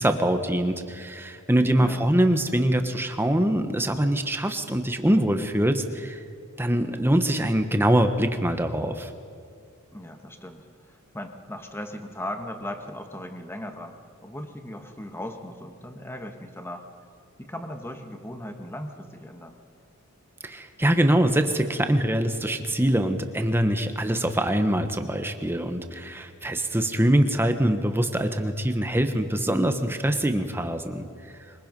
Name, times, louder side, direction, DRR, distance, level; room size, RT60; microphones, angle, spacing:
voice 1, 0.0-6.2 6.6-9.1 20.4-31.1, right 1 dB, 10° right, 7 dB, 1.1 m, -23 dB
voice 2, 1.7-2.1 9.9-14.0 14.2-16.9 17.4-19.6, left 1 dB, 10° left, 5 dB, 1.5 m, -38 dB
23.0 x 21.5 x 5.3 m, 2.4 s
head